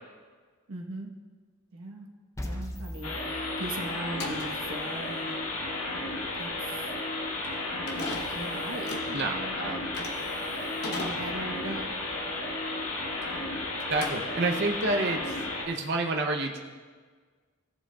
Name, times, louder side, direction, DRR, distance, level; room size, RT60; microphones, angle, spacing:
voice 1, 0.7-1.1 1.7-2.1 2.4-5.3 6.4-6.8 7.7-9.6 10.0-10.1 10.8-11.9, right 2 dB, 70° right, 1 dB, 1.1 m, -39 dB
sound 1, 2.4-4.4, left 1 dB, 15° left, 0.5 m, -39 dB
sound 2, 3.0-15.7, left 2 dB, 90° left, 1.4 m, -33 dB
sound 3, 4.0-13.5 13.8-14.8, left 2 dB, 50° left, 1.0 m, -40 dB
voice 2, 9.1-9.9 13.9-16.6, right 2 dB, 50° right, 2 dB, 0.6 m, -29 dB
15.0 x 7.4 x 2.3 m, 1.5 s
head